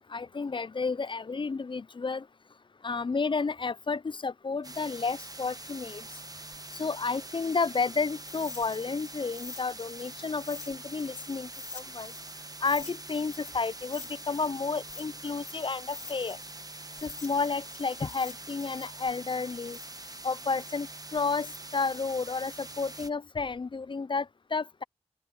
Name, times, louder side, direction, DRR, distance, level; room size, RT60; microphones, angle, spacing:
voice 1, 0.1-2.2 2.8-6.0 6.8-12.1 12.6-16.4 17.0-19.8 20.2-24.8, left 4 dB, 40° left, 0.4 m, -31 dB
sound 1, 4.6-23.1, right 2 dB, 30° right, 1.2 m, -44 dB
sound 2, 8.2-12.4 12.6-16.6 16.9-21.0, left 4 dB, 75° left, 3.7 m, -47 dB
open air
cardioid pair, 40°, 12 cm